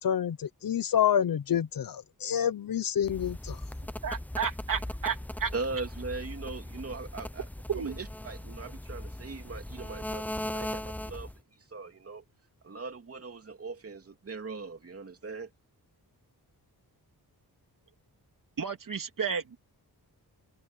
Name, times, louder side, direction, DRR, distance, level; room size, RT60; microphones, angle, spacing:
voice 1, 0.0-3.6, left 9 dB, 60° left, 1.0 m, -28 dB
sound 1, 3.0-11.4, left 1 dB, 5° left, 0.7 m, -39 dB
voice 2, 4.0-5.5 7.7-8.0 18.6-19.6, right 6 dB, 55° right, 3.3 m, -32 dB
voice 3, 5.5-7.5 7.7-11.3 11.7-12.2 12.6-15.5, right 3 dB, 35° right, 3.0 m, -40 dB
wide cardioid pair, 135°, 38 cm